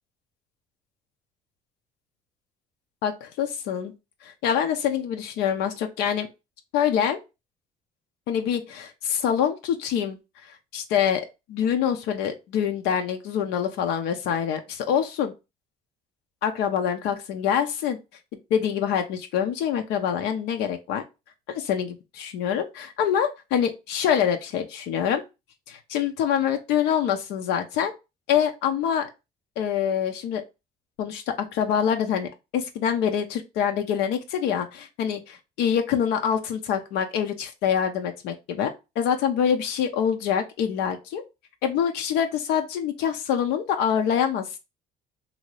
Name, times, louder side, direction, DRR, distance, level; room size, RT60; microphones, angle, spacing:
voice 1, 3.0-3.9 4.2-6.3 6.7-7.2 8.3-10.2 10.5-15.3 16.4-18.0 18.5-21.0 21.5-25.2 25.7-27.9 28.3-29.1 29.6-30.4 31.0-31.2 31.5-38.7 39.0-41.2 41.6-44.5, left 8 dB, 90° left, 0.5 m, -25 dB
2.8 x 2.6 x 3.1 m
cardioid pair, 110°, 17 cm